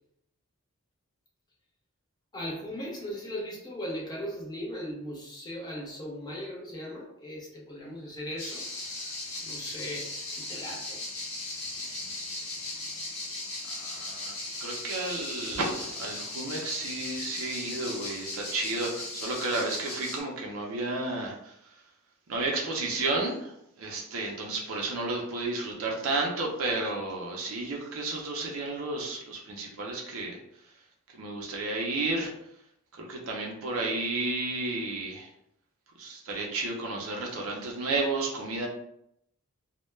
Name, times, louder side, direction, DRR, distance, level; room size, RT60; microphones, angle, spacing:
voice 1, 2.3-8.7 9.4-11.0, equal, 20° left, -3 dB, 0.5 m, -38 dB
sound 1, 8.4-20.2, left 2 dB, 85° left, 1.0 m, -37 dB
voice 2, 13.8-21.8 22.3-30.7 31.1-32.3 33.0-35.3 36.0-38.7, right 2 dB, 65° right, -1 dB, 0.5 m, -32 dB
2.2 x 2.1 x 3.1 m, 0.75 s
head